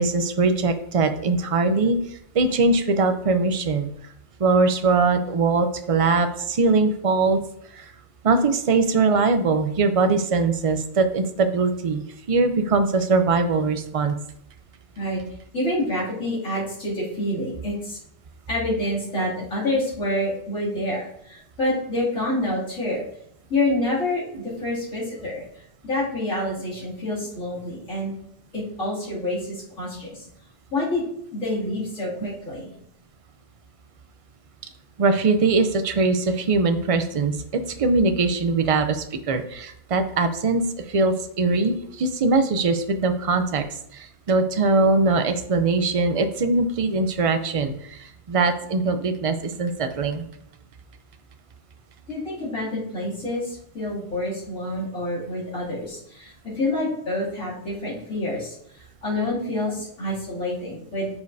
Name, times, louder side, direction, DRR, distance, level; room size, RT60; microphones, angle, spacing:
voice 1, 0.0-3.9 4.4-7.4 7.7-7.9 8.2-14.2 35.0-43.6 43.9-50.2, right 3 dB, 50° right, 9 dB, 0.4 m, -21 dB
voice 2, 15.5-18.0 18.5-23.0 23.5-28.1 28.5-30.3 30.7-31.0 31.3-32.7 52.1-61.1, left 1 dB, 80° left, -9 dB, 3.0 m, -27 dB
9.5 x 5.2 x 2.7 m, 0.71 s
omnidirectional pair, 1.3 m